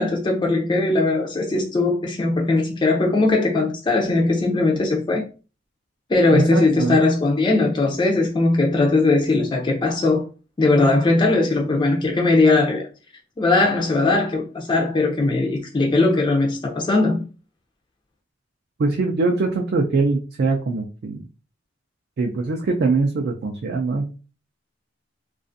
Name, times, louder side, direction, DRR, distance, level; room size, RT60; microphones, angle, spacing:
voice 1, 0.0-5.3 6.1-10.2 10.6-12.8 13.4-17.2, left 2 dB, 25° left, 0.4 m, -19 dB
voice 2, 6.3-7.0 18.8-21.3 22.2-24.2, right 3 dB, 55° right, 0.4 m, -22 dB
2.4 x 2.3 x 2.5 m
head